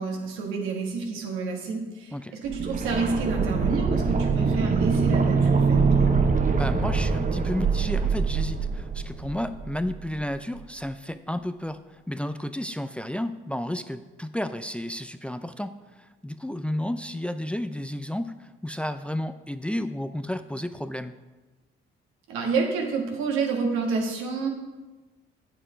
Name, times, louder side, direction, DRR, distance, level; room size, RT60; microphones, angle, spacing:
voice 1, 0.0-6.1 22.3-24.5, right 4 dB, 85° right, 1 dB, 1.7 m, -29 dB
sound 1, 2.5-10.3 10.5-10.6, right 5 dB, 40° right, 0.9 m, -24 dB
voice 2, 6.6-21.1, left 1 dB, 5° left, 10 dB, 0.5 m, -32 dB
8.6 x 6.8 x 5.0 m, 1.2 s
supercardioid pair, 65°, 21 cm